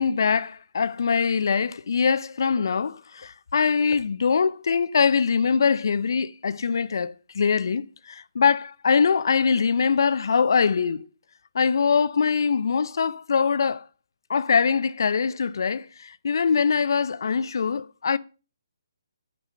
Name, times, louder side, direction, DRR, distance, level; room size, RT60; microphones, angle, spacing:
voice 1, 0.0-11.1 11.5-13.8 14.3-18.2, left 5 dB, 65° left, 0.6 m, -23 dB
9.3 x 4.9 x 7.3 m
hypercardioid pair, 150°, 2 cm